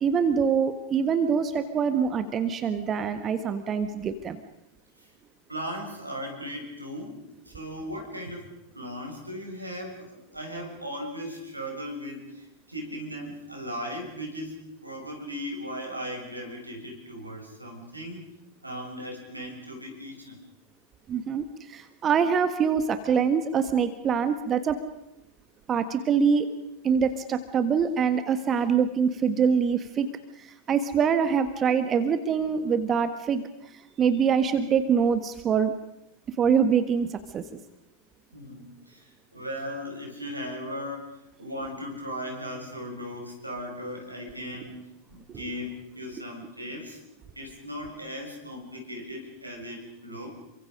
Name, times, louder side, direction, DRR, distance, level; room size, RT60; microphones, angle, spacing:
voice 1, 0.0-4.4 21.1-24.8 25.7-26.5 26.8-30.1 30.4-33.4 34.0-35.7 36.4-37.6, right 6 dB, 25° right, 10 dB, 1.5 m, -24 dB
voice 2, 5.5-8.5 8.7-18.2 18.6-20.4 38.3-44.8 45.1-47.0 47.3-50.3, equal, 85° right, 1 dB, 6.7 m, -37 dB
28.5 x 24.5 x 5.2 m, 0.88 s
figure-of-eight pair, 90°, 0 cm